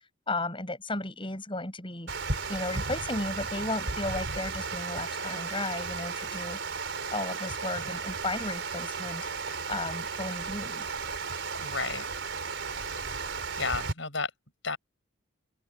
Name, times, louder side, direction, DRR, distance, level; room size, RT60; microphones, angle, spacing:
voice 1, 0.3-2.1 2.5-6.6 7.1-9.3 9.7-10.9, left 2 dB, 25° left, 7.7 m, -34 dB
Water, 2.1-13.9, right 4 dB, 65° right, 4.5 m, -34 dB
voice 2, 11.6-12.0 13.6-14.3 14.6-14.8, left 4 dB, 70° left, 7.4 m, -32 dB
open air
head